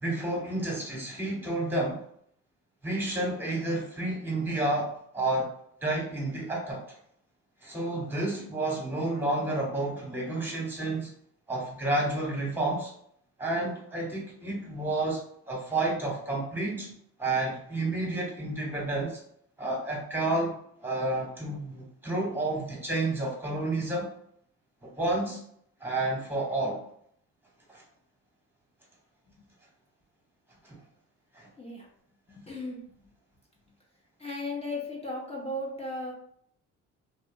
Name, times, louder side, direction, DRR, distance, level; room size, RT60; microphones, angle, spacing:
voice 1, 0.0-2.0 2.8-5.5 5.8-6.8 7.6-11.1 11.5-12.9 13.4-15.2 15.5-16.9 17.2-19.2 19.6-24.1 24.8-25.4 25.8-26.8 27.7-27.8 30.6-30.8 31.3-31.5, right 2 dB, 5° right, -2 dB, 1.1 m, -30 dB
voice 2, 32.3-33.0 34.2-36.1, left 1 dB, 20° left, -3 dB, 0.7 m, -36 dB
2.6 x 2.2 x 2.6 m, 0.66 s
cardioid pair, 90°, 30 cm